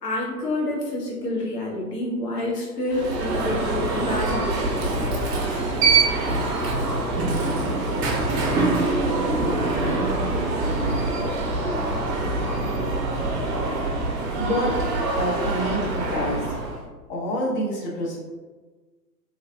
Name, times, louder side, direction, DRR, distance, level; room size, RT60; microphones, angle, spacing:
voice 1, 0.0-5.7, left 1 dB, 70° left, -2 dB, 1.2 m, -28 dB
Alarm, 2.9-16.8, right 2 dB, 40° right, 0.8 m, -24 dB
voice 2, 14.3-14.7 15.2-16.5 17.1-18.2, equal, 20° left, -3 dB, 0.5 m, -27 dB
3.1 x 2.8 x 2.4 m, 1.3 s
hypercardioid pair, 110°, 49 cm